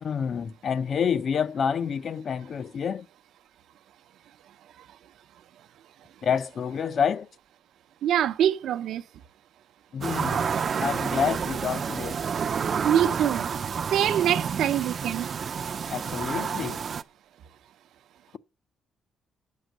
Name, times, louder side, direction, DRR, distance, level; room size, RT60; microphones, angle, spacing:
voice 1, 0.0-3.0 6.2-7.3 9.9-10.5 10.8-12.2 15.9-16.8, left 7 dB, 45° left, 0.5 m, -28 dB
voice 2, 8.0-9.0 12.8-13.5 13.9-15.3, right 10 dB, 85° right, 0.7 m, -24 dB
sound 1, 10.0-17.0, right 6 dB, 40° right, 0.4 m, -29 dB
9.2 x 6.4 x 7.8 m
cardioid pair, 150°, 0 cm